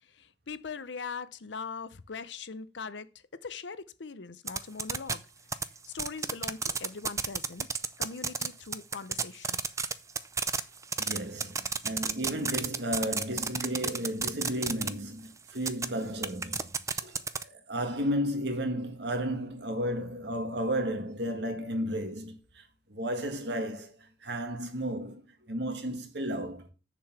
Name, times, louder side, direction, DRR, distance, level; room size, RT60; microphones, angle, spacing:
voice 1, 0.0-5.3 5.5-7.7 8.0-9.6, left 5 dB, 85° left, 0.7 m, -41 dB
sound 1, 4.5-5.1 5.5-8.5 8.7-14.9 15.6-15.9 16.2-17.4, right 5 dB, 20° right, 0.5 m, -29 dB
voice 2, 11.0-22.6 22.9-24.0 24.2-26.7, equal, 70° right, 1.8 m, -33 dB
7.7 x 6.9 x 5.8 m
head